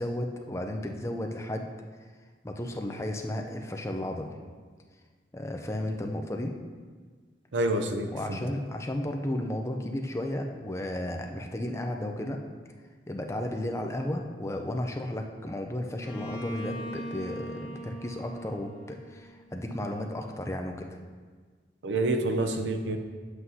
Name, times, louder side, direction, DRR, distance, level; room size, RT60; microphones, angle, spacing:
voice 1, 0.0-1.7 2.4-4.3 5.3-6.5 8.1-12.4 13.1-21.0, left 1 dB, 15° left, 3 dB, 0.5 m, -33 dB
voice 2, 7.5-8.4 21.8-23.0, right 2 dB, 90° right, 6 dB, 0.7 m, -28 dB
Bowed string instrument, 16.0-19.8, equal, 80° left, 1.7 m, -41 dB
9.3 x 8.0 x 2.8 m, 1.5 s
head